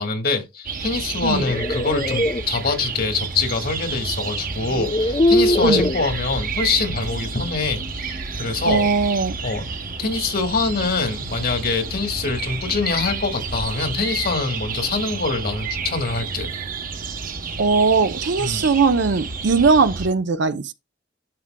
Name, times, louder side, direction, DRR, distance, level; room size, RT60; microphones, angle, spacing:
voice 1, 0.0-8.9 9.4-9.7 10.0-16.5 18.4-18.7, left 4 dB, 55° left, 1.7 m, -24 dB
sound 1, 0.6-20.1, right 4 dB, 50° right, 1.0 m, -30 dB
sound 2, 1.1-2.4 3.9-4.0 4.7-6.0, left 1 dB, 25° left, 0.5 m, -21 dB
voice 2, 8.7-9.4 17.6-20.7, right 4 dB, 65° right, 0.6 m, -19 dB
11.0 x 4.7 x 2.2 m
head